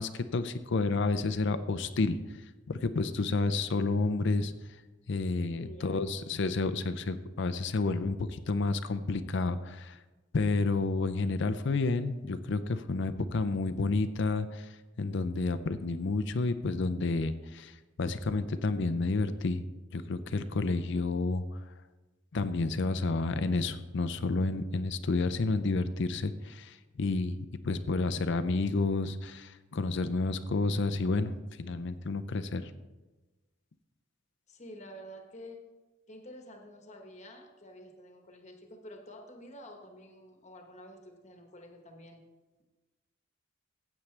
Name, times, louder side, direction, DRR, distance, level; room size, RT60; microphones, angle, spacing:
voice 1, 0.0-2.2 2.7-4.5 5.1-10.0 10.3-14.7 15.0-19.6 19.9-21.6 22.3-32.7, left 3 dB, 60° left, 12 dB, 0.5 m, -30 dB
voice 2, 5.6-6.2 34.5-35.7 36.1-42.2, equal, 35° left, 4 dB, 1.2 m, -49 dB
15.0 x 8.5 x 3.3 m, 1.2 s
head